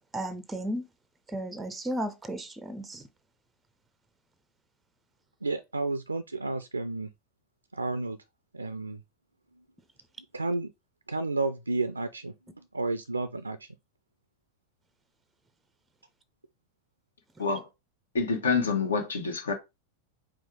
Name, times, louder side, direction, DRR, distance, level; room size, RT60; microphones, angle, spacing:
voice 1, 0.1-0.9 1.3-3.0, right 1 dB, 10° right, 0.5 m, -34 dB
voice 2, 5.4-7.1 7.7-8.2 8.5-9.0 10.3-10.7 11.1-13.7, right 2 dB, 80° right, 0.3 m, -31 dB
voice 3, 18.1-19.5, left 4 dB, 70° left, 1.1 m, -27 dB
4.7 x 2.0 x 4.5 m
figure-of-eight pair, 90°, 0 cm